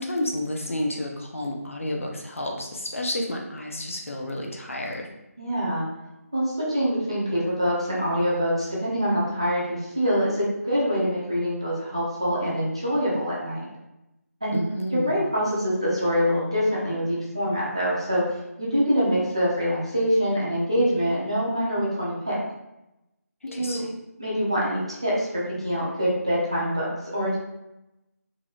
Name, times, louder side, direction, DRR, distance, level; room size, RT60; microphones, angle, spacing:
voice 1, 0.0-5.1 14.5-15.2 23.4-23.9, left 1 dB, 55° left, 0 dB, 0.5 m, -30 dB
voice 2, 5.4-5.9 6.3-13.6 14.4-14.6 14.9-22.4 23.5-23.8 24.2-27.4, equal, 20° right, -6 dB, 0.4 m, -25 dB
2.9 x 2.7 x 2.3 m, 0.92 s
figure-of-eight pair, 180°, 9 cm